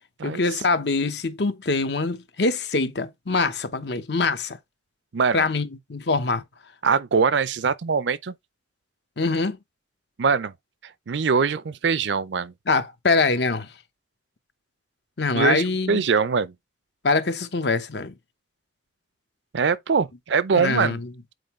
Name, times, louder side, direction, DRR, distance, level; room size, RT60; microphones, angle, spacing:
voice 1, 0.2-4.6 5.3-6.4 9.2-9.6 12.7-13.7 15.2-16.0 17.0-18.1 20.6-21.0, left 3 dB, 65° left, 0.9 m, -24 dB
voice 2, 5.1-5.5 6.8-8.3 10.2-10.5 10.8-12.5 15.3-16.5 19.5-21.0, right 5 dB, 75° right, 0.5 m, -23 dB
7.8 x 4.5 x 3.1 m
head